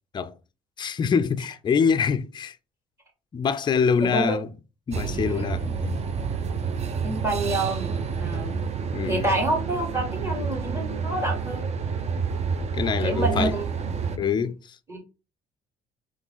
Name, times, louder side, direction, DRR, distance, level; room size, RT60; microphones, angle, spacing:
voice 1, 0.8-2.6 3.3-4.5 4.9-5.9 8.4-8.6 8.9-9.3 12.7-13.6 14.2-14.8, left 6 dB, 25° left, 0.4 m, -25 dB
voice 2, 4.0-4.4 5.4-5.5 7.0-8.6 9.0-11.7 13.0-13.7 14.1-14.4 14.9-15.0, right 2 dB, 15° right, 1.9 m, -28 dB
sound 1, 4.9-14.2, right 5 dB, 40° right, 0.6 m, -29 dB
3.8 x 3.2 x 3.6 m
cardioid pair, 110°, 17 cm